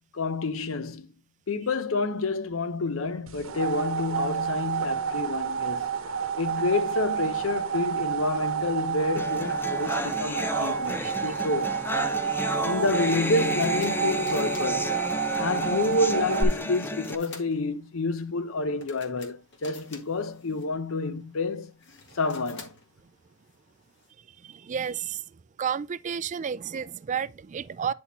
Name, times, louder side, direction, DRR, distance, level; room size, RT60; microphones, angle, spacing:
voice 1, 0.1-1.1 1.5-5.9 6.4-11.9 12.6-14.9 15.4-21.7 22.1-22.7, left 3 dB, 80° left, 0.7 m, -29 dB
sound 1, 3.3-16.4, right 7 dB, 85° right, 0.9 m, -29 dB
sound 2, 9.2-17.1, left 1 dB, 10° left, 0.6 m, -32 dB
sound 3, 13.3-24.1, left 4 dB, 60° left, 1.8 m, -51 dB
voice 2, 24.4-25.2 25.6-27.9, right 7 dB, 35° right, 0.3 m, -31 dB
9.6 x 4.2 x 4.1 m
head